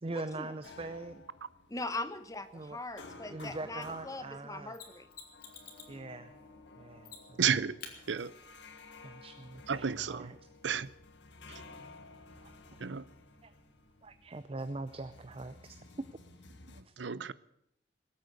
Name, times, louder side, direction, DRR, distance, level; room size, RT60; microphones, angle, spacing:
voice 1, 0.0-1.2 2.5-2.8 3.3-4.8 5.9-6.3 6.8-7.5 9.0-10.4 12.4-12.5 13.4-13.5 14.0-15.8 16.9-17.0, right 2 dB, 30° right, 0.6 m, -42 dB
sound 1, 0.6-16.8, left 3 dB, 75° left, 1.7 m, -54 dB
voice 2, 1.7-5.1, left 2 dB, 20° left, 1.0 m, -40 dB
Mechanisms, 4.7-6.0 7.0-7.4 7.8-8.0 10.7-10.8, left 6 dB, 55° left, 2.8 m, -48 dB
voice 3, 7.4-7.7 8.1-8.3 9.7-10.3 10.6-10.9 11.5-11.6 12.8-13.0 16.8-17.3, right 7 dB, 85° right, 0.6 m, -32 dB
21.0 x 8.6 x 8.1 m
head